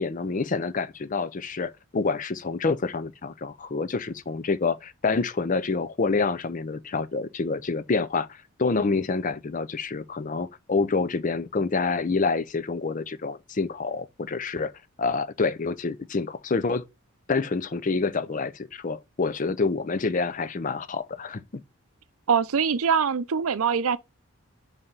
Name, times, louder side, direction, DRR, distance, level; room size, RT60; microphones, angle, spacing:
voice 1, 0.0-14.7 15.0-16.8 17.3-21.4, left 4 dB, 35° left, 0.5 m, -27 dB
voice 2, 22.3-24.0, right 6 dB, 75° right, 0.5 m, -23 dB
5.6 x 4.2 x 5.3 m
head